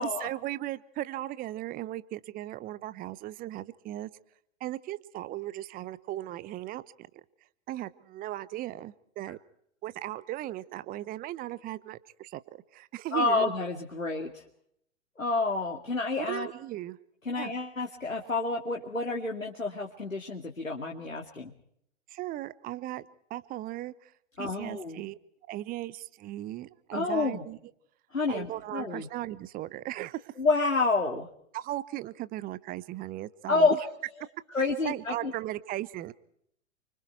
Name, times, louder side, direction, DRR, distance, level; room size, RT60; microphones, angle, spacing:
voice 1, 0.0-4.1 4.6-7.2 7.7-9.4 9.8-13.5 16.2-17.0 17.3-17.5 22.1-24.1 24.4-25.2 25.5-27.6 28.3-30.3 31.5-33.7 34.6-36.1, right 15 dB, 20° right, 18 dB, 0.9 m, -37 dB
voice 2, 13.1-14.4 15.2-16.5 17.2-21.5 24.4-25.0 26.9-27.4 28.1-29.1 30.4-31.3 33.5-33.8 34.5-35.3, left 3 dB, 90° left, 0 dB, 2.5 m, -29 dB
29.0 x 25.0 x 4.6 m, 0.71 s
figure-of-eight pair, 105°, 38 cm